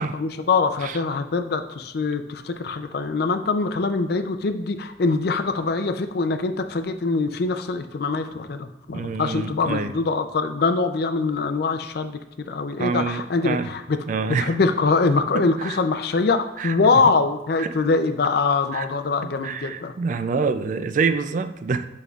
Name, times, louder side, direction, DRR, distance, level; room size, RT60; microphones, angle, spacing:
voice 1, 0.1-14.0 14.4-19.9, left 4 dB, 60° left, 8 dB, 0.5 m, -23 dB
voice 2, 8.9-9.9 12.8-13.7 14.1-14.5 15.3-15.8 16.6-16.7 17.6-17.7 18.7-18.9 19.2-21.8, right 4 dB, 45° right, 11 dB, 0.3 m, -26 dB
7.8 x 5.3 x 2.4 m, 0.98 s
head